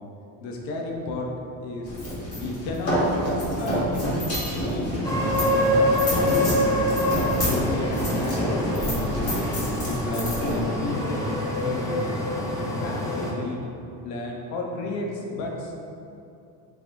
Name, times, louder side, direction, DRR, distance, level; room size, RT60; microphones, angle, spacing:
voice 1, 0.4-1.3 1.6-1.9 2.3-3.0 3.6-6.9 7.4-9.1 9.7-11.3 11.6-13.6 14.0-15.8, left 2 dB, 85° left, 0 dB, 0.7 m, -32 dB
sound 1, 1.8-11.8, equal, 35° left, 1.2 m, -28 dB
sound 2, 5.0-13.3, left 1 dB, 10° left, 0.3 m, -26 dB
3.9 x 2.9 x 2.5 m, 2.6 s
cardioid pair, 115°, 42 cm